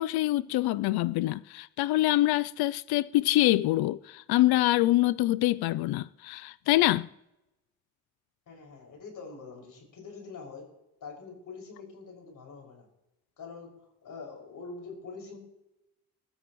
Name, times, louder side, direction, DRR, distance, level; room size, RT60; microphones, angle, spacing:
voice 1, 0.0-7.1, left 16 dB, 80° left, 0.5 m, -25 dB
voice 2, 8.5-10.7 11.0-12.9 13.4-13.7 14.0-15.4, left 4 dB, 60° left, 6.2 m, -44 dB
24.0 x 13.0 x 3.2 m
cardioid pair, 85°, 37 cm